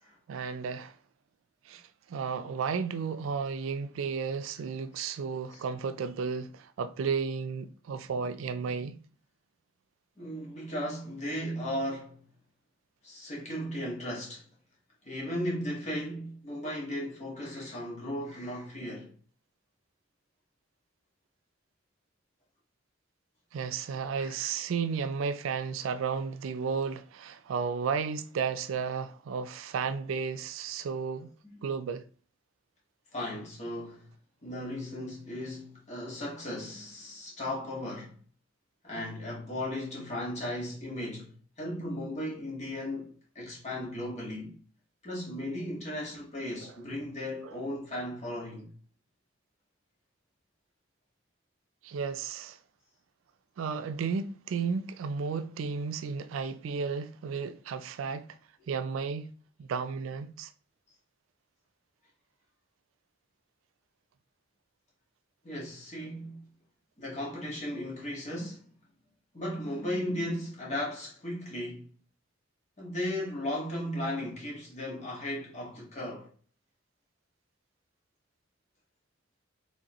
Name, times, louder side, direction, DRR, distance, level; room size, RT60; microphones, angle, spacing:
voice 1, 0.3-0.9 1.7-1.8 2.1-9.0 23.5-31.3 31.6-32.0 46.6-46.7 47.4-47.5 51.8-52.6 53.6-58.4 58.7-59.3 59.6-60.5, right 5 dB, 90° right, 0.4 m, -33 dB
voice 2, 10.2-12.2 13.0-14.4 15.0-19.1 24.1-24.5 33.1-34.1 34.4-38.2 38.8-44.5 45.0-48.7 65.4-66.5 67.0-68.7 69.3-71.9 72.8-76.3, left 1 dB, 35° left, 1.6 m, -36 dB
5.1 x 3.1 x 2.9 m
head